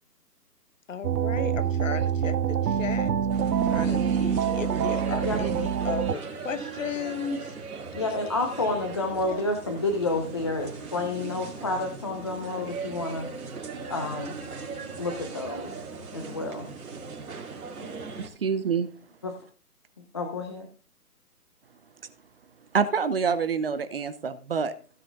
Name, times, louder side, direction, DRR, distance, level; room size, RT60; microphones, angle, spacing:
voice 1, 0.9-3.1 3.7-7.5, left 7 dB, 55° left, 11 dB, 1.2 m, -35 dB
sound 1, 1.0-6.1, right 8 dB, 80° right, 0.7 m, -26 dB
sound 2, 3.3-18.3, right 5 dB, 60° right, 3.0 m, -38 dB
voice 2, 8.0-13.3 13.9-14.4 15.0-15.7 16.1-16.7 19.2-19.3 20.1-20.7, left 2 dB, 20° left, 3 dB, 0.6 m, -29 dB
voice 3, 18.2-18.9 22.7-24.7, right 6 dB, 40° right, 12 dB, 0.8 m, -26 dB
16.0 x 6.2 x 3.9 m, 0.40 s
hypercardioid pair, 155°, 47 cm